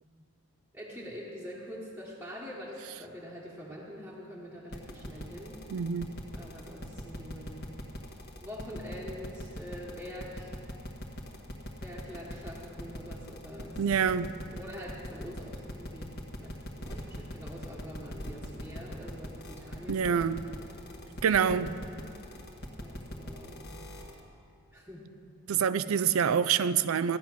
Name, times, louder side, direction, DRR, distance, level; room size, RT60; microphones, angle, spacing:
voice 1, 0.7-5.6 6.3-7.6 8.4-10.6 11.8-20.4 21.0-21.8 22.8-23.6 24.7-25.1 25.9-26.1, equal, 10° right, -6 dB, 1.3 m, -45 dB
sound 1, 4.7-24.2, equal, 50° left, 1.4 m, -41 dB
voice 2, 5.7-6.1 13.8-14.3 19.9-20.5 21.2-21.7 25.5-27.2, right 7 dB, 75° right, 15 dB, 0.4 m, -26 dB
14.5 x 9.8 x 6.1 m, 2.6 s
head